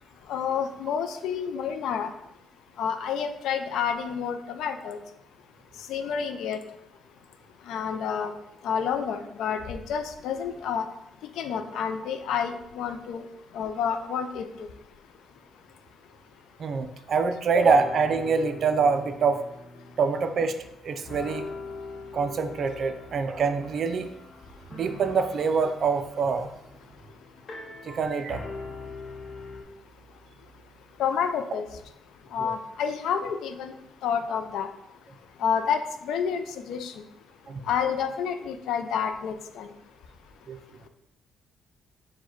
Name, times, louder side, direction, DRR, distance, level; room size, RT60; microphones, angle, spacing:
voice 1, 0.3-2.1 2.8-5.0 5.9-6.6 7.7-8.3 8.6-10.9 11.4-13.2 13.5-14.5 31.0-31.7 32.3-33.7 34.0-34.7 35.4-37.0 37.7-39.7, left 7 dB, 80° left, 8 dB, 0.4 m, -29 dB
voice 2, 16.6-19.4 20.0-20.6 20.8-21.5 22.1-24.1 24.7-26.5 27.8-28.4 32.4-32.5 37.5-37.6 40.5-40.6, right 5 dB, 55° right, 9 dB, 0.4 m, -25 dB
sound 1, 17.6-20.8 21.0-29.6, left 3 dB, 50° left, 0.7 m, -42 dB
4.6 x 2.2 x 4.4 m, 0.83 s
cardioid pair, 90°, 0 cm